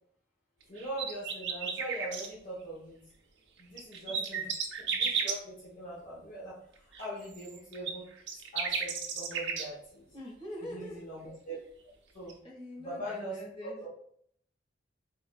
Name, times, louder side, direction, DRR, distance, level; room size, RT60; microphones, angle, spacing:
voice 1, 0.7-3.0 3.6-4.5 4.8-8.1 8.3-10.1 10.6-11.6 12.1-12.4 12.8-13.9, right 1 dB, 45° left, -7 dB, 1.2 m, -42 dB
sound 1, 0.8-2.3 3.6-5.4 6.9-9.7 12.3-12.4, right 6 dB, 70° right, 0.8 m, -33 dB
voice 2, 10.1-11.0 12.4-13.9, left 1 dB, 30° left, -5 dB, 1.6 m, -44 dB
4.7 x 3.9 x 2.4 m, 0.66 s
head